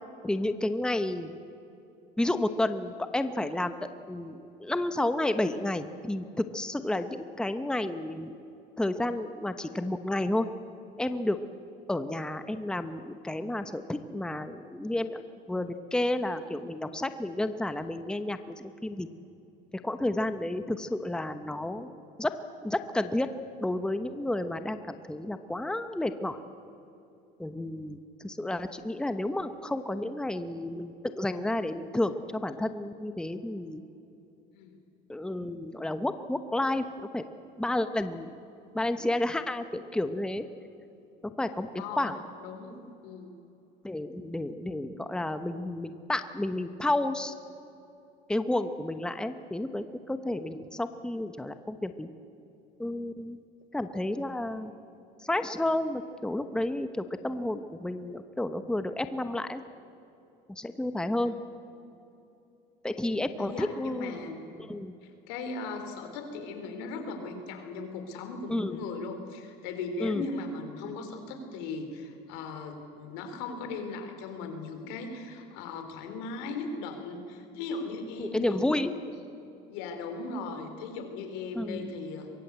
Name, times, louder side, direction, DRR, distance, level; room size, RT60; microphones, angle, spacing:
voice 1, 0.2-1.3 2.2-3.7 4.1-8.3 8.8-10.5 11.0-11.4 11.9-15.2 15.5-19.1 19.8-21.9 22.2-22.3 22.6-23.3 23.6-26.4 27.4-33.8 35.1-36.8 37.1-37.3 37.6-38.3 38.7-40.4 41.4-42.2 43.8-47.3 48.3-52.1 52.8-53.4 53.7-54.7 55.2-59.6 60.5-61.4 62.8-64.1 64.6-64.9 68.5-68.8 70.0-70.2 78.2-78.9 81.5-81.9, left 1 dB, 5° left, 9 dB, 1.0 m, -31 dB
voice 2, 41.8-42.1 42.4-43.4 61.2-61.3 63.0-64.4 65.0-78.7 79.7-82.3, left 3 dB, 85° left, 6 dB, 4.0 m, -38 dB
23.0 x 22.5 x 8.2 m, 2.8 s
cardioid pair, 120°, 19 cm